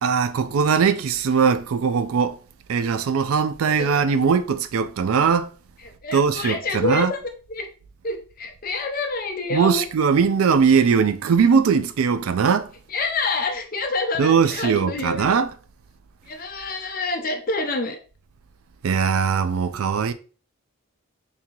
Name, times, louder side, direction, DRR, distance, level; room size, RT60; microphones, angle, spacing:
voice 1, 0.0-2.4 2.7-5.5 6.1-7.1 9.5-12.7 14.2-15.5 18.8-20.1, right 6 dB, 75° right, 0.4 m, -20 dB
voice 2, 6.0-7.2 7.5-7.7 8.0-9.8 12.9-15.3 16.3-18.0, left 3 dB, 40° left, 0.6 m, -27 dB
3.7 x 2.8 x 2.9 m
head